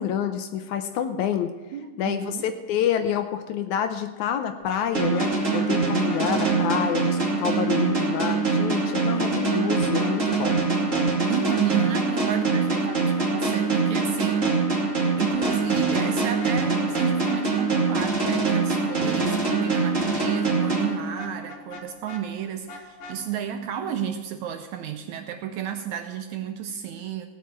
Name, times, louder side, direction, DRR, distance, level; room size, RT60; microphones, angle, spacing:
voice 1, 0.0-1.5 2.0-10.6, left 9 dB, 75° left, 8 dB, 1.9 m, -27 dB
voice 2, 1.7-2.5 11.3-14.5 15.2-27.3, right 8 dB, 75° right, 7 dB, 1.7 m, -32 dB
Vehicle horn car horn honking, 4.6-5.7 6.1-6.5 10.0-10.6 10.9-11.0 11.5-11.9 15.3-16.1 16.4-16.6 16.9-17.4 21.2-22.2 22.7-23.2, left 2 dB, 55° left, 2.1 m, -40 dB
sound 1, 4.9-21.5, right 4 dB, 25° right, 2.3 m, -24 dB
16.5 x 6.1 x 8.4 m, 1.2 s
omnidirectional pair, 3.8 m